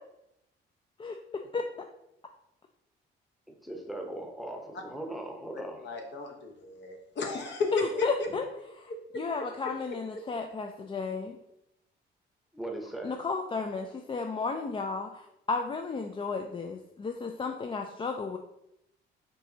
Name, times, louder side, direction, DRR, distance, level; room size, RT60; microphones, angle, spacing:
voice 1, 1.0-1.6 7.7-8.4 8.8-8.9 9.2-11.4 13.0-18.4, left 4 dB, 25° left, 4 dB, 0.3 m, -33 dB
voice 2, 3.6-5.8 12.5-13.2, right 1 dB, ahead, 2 dB, 0.8 m, -39 dB
voice 3, 5.8-8.3 8.9-9.0, left 3 dB, 65° left, 2 dB, 1.0 m, -34 dB
4.5 x 4.0 x 2.8 m, 0.83 s
cardioid pair, 90°, 20 cm